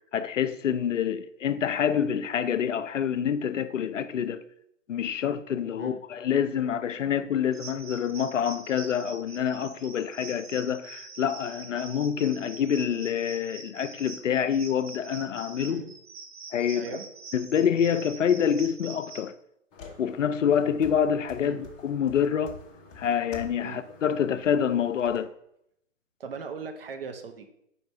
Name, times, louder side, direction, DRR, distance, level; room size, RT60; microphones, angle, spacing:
voice 1, 0.1-4.4 4.9-15.8 16.5-17.0 17.3-19.3 20.0-22.6 23.0-25.3, left 8 dB, 70° left, 0.5 m, -27 dB
sound 1, 7.5-19.3, right 4 dB, 70° right, 1.1 m, -45 dB
voice 2, 15.6-15.9 16.7-17.0 21.4-21.6 23.6-23.8 26.2-27.5, right 6 dB, 45° right, 0.8 m, -39 dB
sound 2, 19.7-25.2, left 3 dB, 20° left, 0.8 m, -48 dB
5.2 x 4.2 x 4.5 m
figure-of-eight pair, 130°, 39 cm